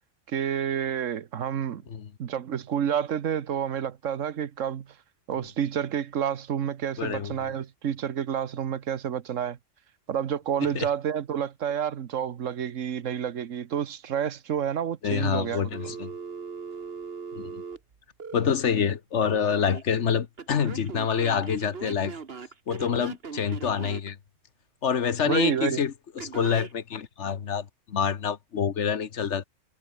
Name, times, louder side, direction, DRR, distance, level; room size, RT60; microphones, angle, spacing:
voice 1, 0.3-1.8 2.2-4.9 5.3-9.6 10.1-15.9 25.3-25.8, right 8 dB, 85° right, 1.4 m, -29 dB
voice 2, 7.0-7.3 10.6-10.9 15.0-16.1 17.3-17.6 18.3-22.1 22.7-24.2 24.8-29.4, left 7 dB, 65° left, 1.4 m, -27 dB
Telephone, 15.7-18.5 19.2-19.8 20.4-24.1 26.2-26.7, right 5 dB, 50° right, 1.7 m, -39 dB
omnidirectional pair, 1.3 m